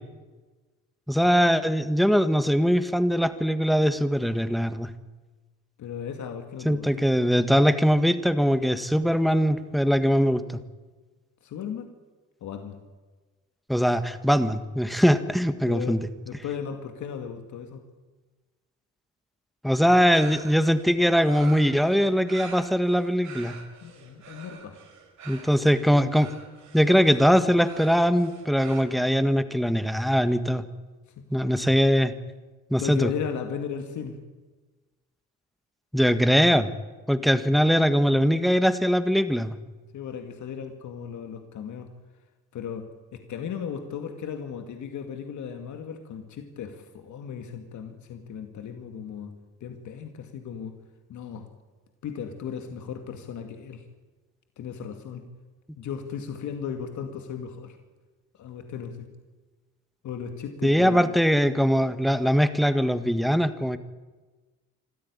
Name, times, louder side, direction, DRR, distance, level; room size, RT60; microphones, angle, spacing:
voice 1, 1.1-4.9 6.6-10.6 13.7-16.1 19.6-23.6 25.3-26.3 26.7-30.6 31.3-32.1 32.7-33.1 35.9-36.7 37.1-39.6 60.6-63.8, equal, ahead, 10 dB, 1.6 m, -21 dB
voice 2, 5.8-7.2 11.4-11.9 12.4-12.8 15.6-17.8 23.8-24.8 31.2-31.6 32.8-34.2 39.9-41.9 42.5-49.3 49.6-50.8 51.1-51.5 52.0-53.8 54.6-55.2 55.8-57.8 58.4-59.1 60.0-61.2, left 7 dB, 75° left, 5 dB, 2.2 m, -36 dB
sound 1, 20.1-28.8, right 6 dB, 70° right, 4.9 m, -46 dB
26.0 x 13.5 x 9.7 m, 1.3 s
cardioid pair, 90°, 30 cm